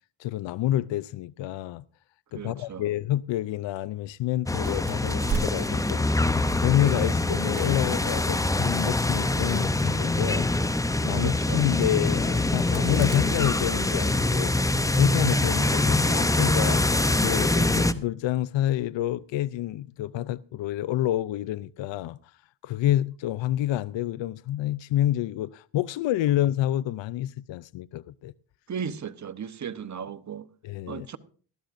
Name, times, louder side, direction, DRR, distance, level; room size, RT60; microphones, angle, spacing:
voice 1, 0.2-1.8 2.3-6.3 6.6-10.5 11.0-14.5 15.0-16.8 17.2-22.2 22.6-28.3 30.6-31.1, left 13 dB, 65° left, 0.5 m, -28 dB
voice 2, 2.3-2.9 11.1-11.7 28.7-30.5 30.9-31.2, right 7 dB, 35° right, 0.9 m, -36 dB
sound 1, 4.5-17.9, left 2 dB, 5° left, 0.6 m, -24 dB
sound 2, 4.5-14.6, right 6 dB, 55° right, 3.1 m, -41 dB
Bird, 14.1-16.9 17.4-17.6 17.8-18.1 18.9-19.0, left 1 dB, 25° left, 6.3 m, -50 dB
19.0 x 12.5 x 2.6 m
cardioid pair, 70°, 48 cm